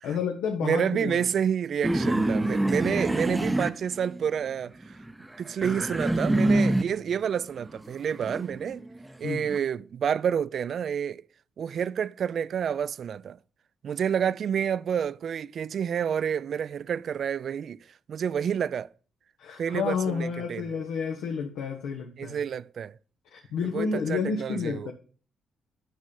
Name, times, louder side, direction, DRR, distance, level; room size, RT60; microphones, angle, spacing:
voice 1, 0.0-1.3 9.2-9.5 19.4-22.4 23.3-24.9, left 6 dB, 85° left, 1.1 m, -30 dB
voice 2, 0.6-5.0 5.4-8.8 9.2-11.2 11.6-13.4 13.8-17.8 18.1-18.9 19.6-20.7 22.2-23.0 23.7-24.9, right 8 dB, 55° right, 0.3 m, -29 dB
sound 1, 1.8-4.5 4.8-7.1 7.6-9.6, right 1 dB, 10° right, 0.6 m, -26 dB
9.2 x 5.5 x 5.3 m
cardioid pair, 90°, 0 cm